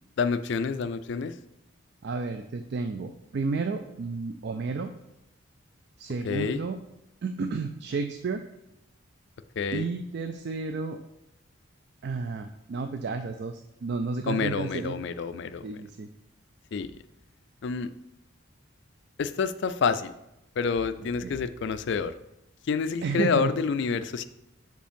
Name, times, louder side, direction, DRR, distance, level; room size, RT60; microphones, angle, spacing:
voice 1, 0.2-1.4 6.2-6.6 9.6-9.9 14.3-15.7 16.7-16.9 17.6-17.9 19.2-20.1 20.6-22.1 22.7-24.3, left 5 dB, 55° left, 12 dB, 0.3 m, -28 dB
voice 2, 2.0-4.9 6.0-6.8 7.2-8.4 9.7-11.0 12.0-15.0 15.6-16.1 21.2-21.4 23.0-23.5, right 4 dB, 55° right, 7 dB, 0.3 m, -32 dB
5.1 x 4.5 x 5.1 m, 0.88 s
head